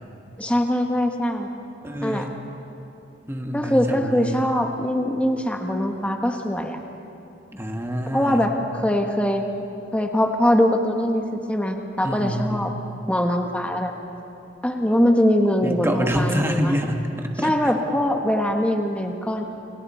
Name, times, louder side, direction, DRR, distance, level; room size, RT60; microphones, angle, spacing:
voice 1, 0.4-1.5 2.0-2.3 3.5-6.8 8.1-8.6 8.8-9.5 9.9-12.7 13.1-13.9 14.6-16.7 17.4-19.4, equal, 5° left, 3 dB, 1.3 m, -22 dB
voice 2, 1.8-2.3 3.3-4.4 7.5-8.5 12.0-12.7 15.6-17.5, equal, 15° right, 3 dB, 1.5 m, -26 dB
29.0 x 25.0 x 4.4 m, 2.8 s
head